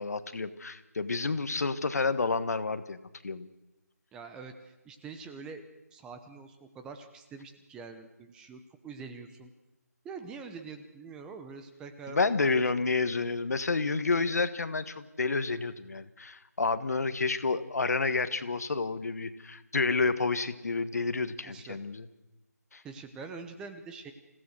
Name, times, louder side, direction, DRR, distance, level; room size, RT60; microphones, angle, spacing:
voice 1, 0.0-3.5 12.1-22.0 22.7-22.8, left 4 dB, 65° left, 12 dB, 1.5 m, -30 dB
voice 2, 4.1-5.6 5.9-9.5 10.0-12.6 13.1-13.3 21.4-21.8 22.8-24.1, right 4 dB, 10° right, 8 dB, 0.9 m, -45 dB
27.0 x 16.5 x 6.5 m, 1.0 s
figure-of-eight pair, 160°, 9 cm